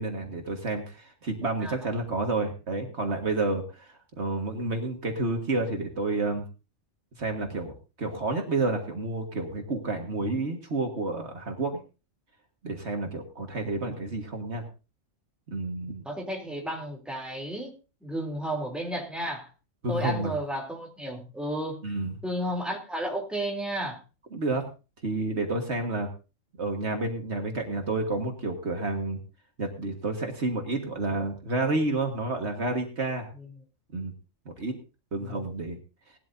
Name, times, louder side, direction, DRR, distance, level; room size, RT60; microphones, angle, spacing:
voice 1, 0.0-6.5 7.2-11.8 12.6-14.7 15.5-16.0 19.8-20.4 21.8-22.1 24.3-24.7 25.0-26.1 26.6-29.2 29.6-33.3 33.9-34.1 34.5-34.7 35.1-35.8, right 2 dB, 60° right, 3 dB, 1.9 m, -30 dB
voice 2, 16.0-17.7 18.0-19.5 19.9-21.8 22.2-24.0 33.4-33.5 35.2-35.3, right 1 dB, ahead, 0 dB, 3.0 m, -32 dB
19.0 x 12.5 x 2.7 m, 0.31 s
omnidirectional pair, 1.3 m